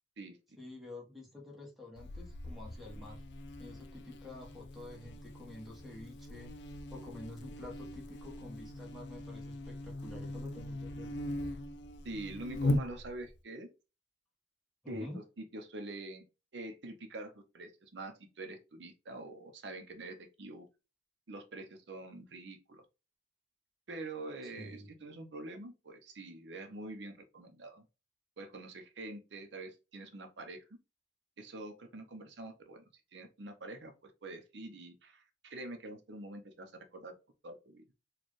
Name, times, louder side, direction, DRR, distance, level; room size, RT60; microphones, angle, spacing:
voice 1, 0.6-3.2 3.6-6.5 6.9-11.1 14.8-15.2 24.4-24.9, left 2 dB, ahead, 1.1 m, -49 dB
Buzz, 2.0-13.4, left 1 dB, 65° left, 0.4 m, -40 dB
voice 2, 12.0-13.7 14.9-15.1 15.4-16.2 16.5-20.7 21.3-22.8 23.9-27.8 28.4-30.6 31.4-32.8 33.1-37.1 37.4-37.8, right 2 dB, 70° right, 0.6 m, -45 dB
4.2 x 2.3 x 3.1 m
head